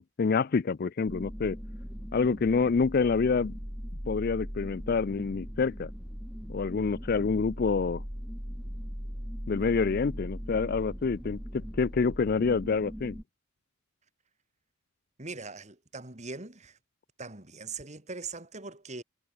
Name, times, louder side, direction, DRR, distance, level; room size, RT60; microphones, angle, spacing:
voice 1, 0.0-1.6 2.1-3.5 4.1-5.9 6.5-8.0 9.5-13.2, left 4 dB, 45° left, 0.4 m, -27 dB
sound 1, 1.1-13.2, equal, 5° right, 2.0 m, -39 dB
voice 2, 15.2-16.8 17.2-19.0, right 4 dB, 35° right, 2.8 m, -41 dB
head